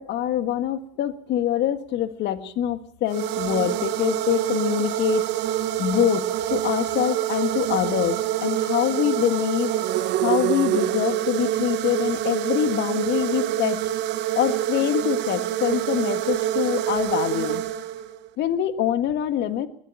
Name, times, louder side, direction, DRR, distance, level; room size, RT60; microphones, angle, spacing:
voice 1, 0.0-5.3 5.8-13.8 14.3-17.6 18.4-19.7, left 11 dB, 60° left, 9 dB, 1.7 m, -25 dB
sound 1, 3.1-18.3, right 12 dB, 65° right, 1.3 m, -26 dB
21.0 x 14.0 x 8.9 m, 0.66 s
supercardioid pair, 80°, 20 cm